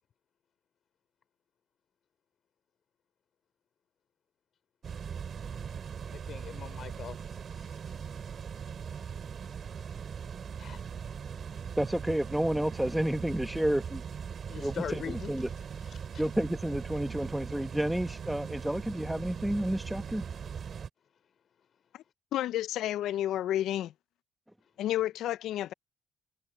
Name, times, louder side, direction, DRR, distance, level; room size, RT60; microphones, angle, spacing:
sound 1, 4.8-20.9, right 7 dB, 50° right, 4.1 m, -40 dB
voice 1, 6.1-7.2 7.6-7.7 10.6-10.8 14.5-15.4 15.9-16.2, left 8 dB, 60° left, 3.9 m, -41 dB
voice 2, 11.8-14.0 14.6-15.0 15.3-15.5 16.2-20.2, right 1 dB, 5° right, 1.1 m, -30 dB
voice 3, 22.3-23.9 24.8-25.7, left 13 dB, 85° left, 0.4 m, -30 dB
cardioid pair, 90°, 0 cm